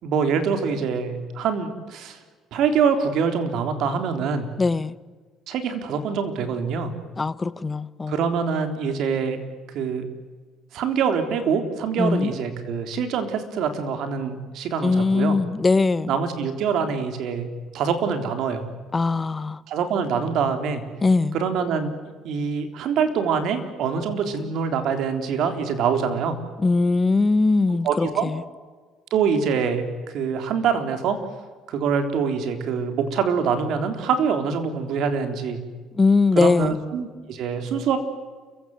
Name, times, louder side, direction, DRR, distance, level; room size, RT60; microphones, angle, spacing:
voice 1, 0.0-2.2 2.5-4.5 5.5-6.9 8.1-9.4 9.7-10.0 10.7-15.4 16.1-17.5 17.7-18.6 19.7-20.8 21.3-21.9 22.2-26.4 27.8-28.3 29.1-31.2 31.7-35.6 36.3-38.0, right 6 dB, 70° right, 3.7 m, -24 dB
voice 2, 4.6-4.9 7.2-8.3 12.0-12.3 14.8-16.1 18.9-19.6 21.0-21.3 26.6-28.4 35.9-36.8, left 3 dB, 25° left, 1.1 m, -21 dB
29.0 x 16.5 x 9.6 m
supercardioid pair, 85°, 0 cm